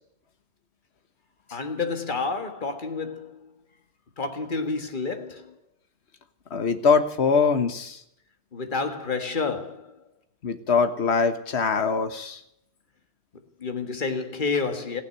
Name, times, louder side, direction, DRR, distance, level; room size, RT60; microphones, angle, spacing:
voice 1, 1.5-3.5 4.2-5.5 8.5-10.0 13.6-15.0, left 4 dB, 40° left, 1.7 m, -29 dB
voice 2, 6.5-8.0 10.4-12.4, left 5 dB, 60° left, 1.6 m, -22 dB
15.5 x 9.8 x 9.5 m
omnidirectional pair, 1.3 m